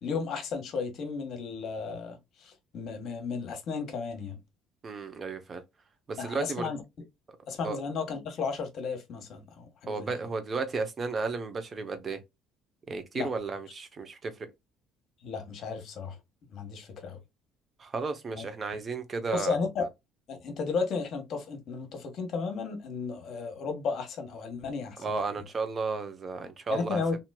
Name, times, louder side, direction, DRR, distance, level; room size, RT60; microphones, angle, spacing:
voice 1, 0.0-2.2 2.4-4.4 6.2-6.8 7.5-10.1 13.1-13.3 15.2-16.2 16.5-17.2 18.3-18.4 19.3-19.8 20.3-25.0 26.7-27.2, left 5 dB, 55° left, 1.1 m, -34 dB
voice 2, 4.8-5.6 6.1-6.7 7.6-7.8 9.9-12.2 12.9-14.4 17.8-19.6 25.0-27.0, right 4 dB, 35° right, 0.8 m, -33 dB
3.0 x 2.8 x 2.2 m
supercardioid pair, 95°, 0 cm